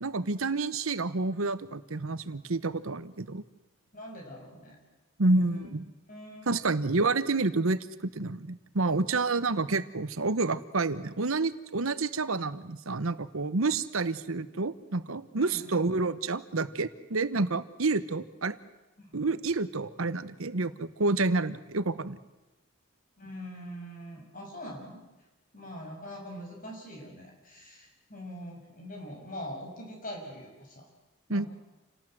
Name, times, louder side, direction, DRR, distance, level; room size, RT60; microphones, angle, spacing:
voice 1, 0.0-3.4 5.2-5.8 6.5-18.6 19.1-22.2 31.3-31.5, right 3 dB, 85° right, 13 dB, 1.1 m, -29 dB
voice 2, 3.9-4.8 5.3-5.7 6.1-6.8 15.4-15.7 19.0-19.2 23.2-25.0 25.5-30.9 31.3-31.5, equal, 40° left, 1 dB, 6.4 m, -43 dB
28.5 x 18.0 x 7.8 m, 1.1 s
head